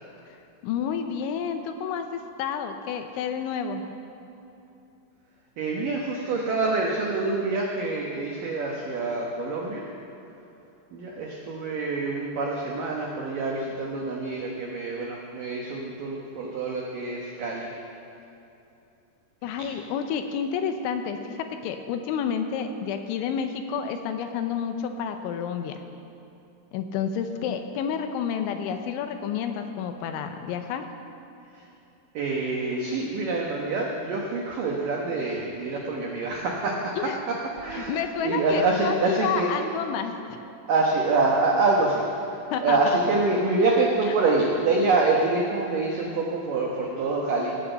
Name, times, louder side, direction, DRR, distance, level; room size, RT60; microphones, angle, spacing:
voice 1, 0.6-3.9 19.4-25.8 26.7-30.9 37.0-37.2 37.7-40.4 42.5-43.0, left 7 dB, 80° left, 6 dB, 3.0 m, -30 dB
voice 2, 5.6-9.9 10.9-17.7 31.5-31.6 32.1-36.9 37.3-37.4 37.6-39.5 40.7-42.4 42.6-47.5, right 3 dB, 85° right, -1 dB, 1.9 m, -26 dB
18.0 x 7.5 x 8.0 m, 2.9 s
omnidirectional pair, 5.8 m